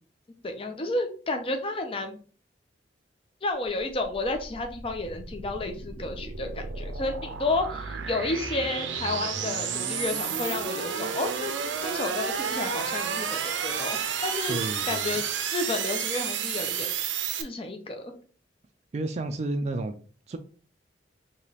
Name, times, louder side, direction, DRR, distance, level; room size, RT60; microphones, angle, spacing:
voice 1, 0.4-2.2 3.4-11.5 11.8-14.6 14.9-15.2 15.5-16.9 17.4-18.1, left 2 dB, 30° left, 5 dB, 0.5 m, -31 dB
sound 1, 3.6-17.4, right 7 dB, 90° right, 0.6 m, -31 dB
voice 2, 14.5-15.2 18.9-20.0 20.3-20.4, right 2 dB, 35° right, 6 dB, 0.3 m, -31 dB
4.9 x 2.9 x 2.8 m, 0.41 s
head